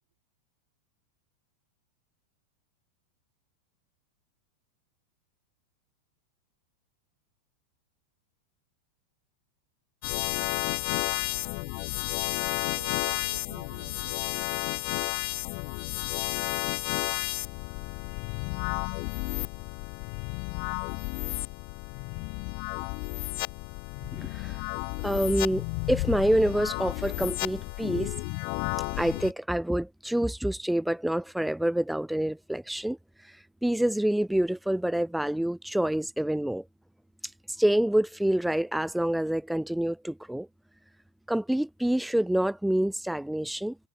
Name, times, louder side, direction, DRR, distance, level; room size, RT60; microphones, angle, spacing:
sound 1, 10.0-29.3, left 40 dB or more, 45° left, 1.4 m, -32 dB
voice 1, 11.2-11.6 12.2-14.1, right 10 dB, 65° right, 3.9 m, -50 dB
voice 2, 24.1-24.6 25.0-28.1 28.9-36.6 37.2-40.5 41.3-43.8, right 1 dB, ahead, 0.9 m, -27 dB
figure-of-eight pair, 90°, 0 cm